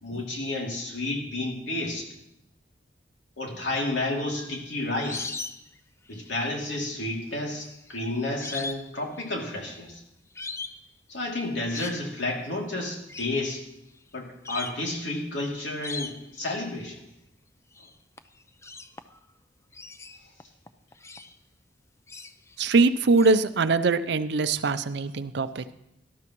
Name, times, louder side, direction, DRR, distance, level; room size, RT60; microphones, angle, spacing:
voice 1, 0.0-2.1 3.4-5.4 6.1-10.0 11.1-13.6 14.1-17.0, left 2 dB, 85° left, -1 dB, 2.8 m, -31 dB
sound 1, 4.3-5.8 6.1-6.6 7.6-8.9 9.2-9.8 10.4-10.8 11.4-12.0 13.1-13.4 14.0-14.1 14.4-14.9 15.8-16.4 17.8-17.9 18.2-19.3 19.7-21.4 22.1-22.6 23.2-23.3, left 3 dB, 15° left, 0.4 m, -39 dB
voice 2, 22.6-25.7, right 3 dB, 65° right, 11 dB, 0.5 m, -22 dB
18.0 x 12.5 x 3.1 m, 0.85 s
head